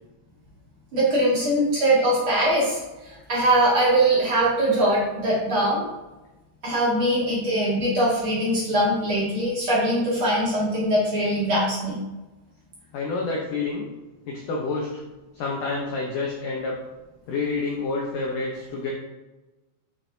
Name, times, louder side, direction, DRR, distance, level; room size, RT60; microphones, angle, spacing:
voice 1, 0.9-5.8 6.6-12.0, right 1 dB, 40° right, -7 dB, 2.2 m, -22 dB
voice 2, 12.9-13.9 14.3-15.0 15.3-16.8 17.3-18.9, left 3 dB, 85° left, -2 dB, 1.8 m, -28 dB
9.6 x 6.1 x 2.8 m, 1.1 s
omnidirectional pair, 5.4 m